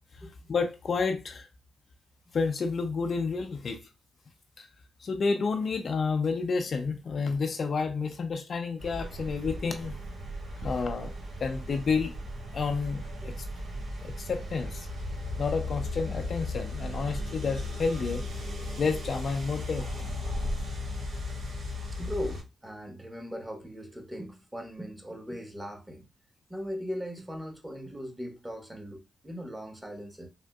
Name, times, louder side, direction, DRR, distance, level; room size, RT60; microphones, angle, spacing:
voice 1, 0.5-1.5 2.3-3.8 4.6-4.7 5.0-10.0 10.6-11.1 11.4-12.1 12.5-13.3 14.0-14.9 15.4-18.2 18.8-20.1, left 4 dB, 60° left, 0.4 m, -30 dB
sound 1, 8.8-22.4, left 1 dB, 85° right, 1.5 m, -36 dB
voice 2, 22.0-26.0 26.5-30.3, equal, 10° right, 1.0 m, -39 dB
3.5 x 2.5 x 2.2 m
supercardioid pair, 55°, 0 cm